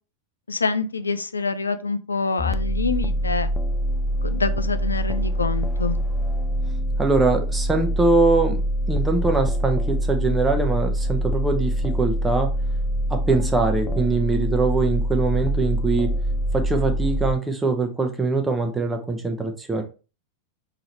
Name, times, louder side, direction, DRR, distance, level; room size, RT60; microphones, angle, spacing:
voice 1, 0.5-3.5 4.2-6.0, left 4 dB, 75° left, 12 dB, 0.4 m, -26 dB
sound 1, 2.4-17.4, equal, 10° left, 0.3 m, -24 dB
voice 2, 7.0-8.6 8.9-12.5 13.1-16.1 16.5-19.8, right 3 dB, 10° right, 4 dB, 0.9 m, -22 dB
4.5 x 3.8 x 3.0 m, 0.33 s
figure-of-eight pair, 90°, 0 cm